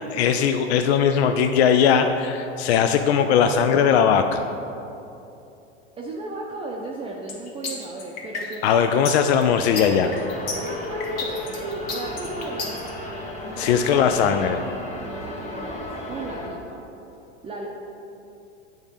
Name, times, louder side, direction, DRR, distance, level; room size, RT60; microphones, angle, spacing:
voice 1, 0.1-4.5 8.6-10.1 13.6-14.6, left 7 dB, 75° left, 7 dB, 0.5 m, -19 dB
voice 2, 6.0-8.8 10.7-13.0 13.4-14.6 15.0-16.8 17.4-17.7, right 2 dB, 15° right, -2 dB, 0.6 m, -36 dB
sound 1, 7.3-12.9, left 4 dB, 50° left, 1.4 m, -32 dB
sound 2, 9.7-16.5, left 1 dB, 20° left, 1.1 m, -33 dB
7.9 x 3.6 x 5.4 m, 2.8 s
hypercardioid pair, 105°, 33 cm